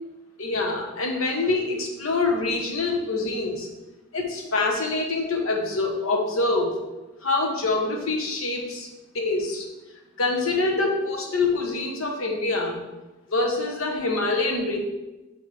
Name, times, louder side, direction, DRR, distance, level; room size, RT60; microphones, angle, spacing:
voice 1, 0.4-3.7 4.1-6.7 7.2-8.9 9.1-9.6 10.2-12.8 13.3-14.8, left 3 dB, 80° left, 0 dB, 1.3 m, -25 dB
7.5 x 3.7 x 4.8 m, 1.1 s
head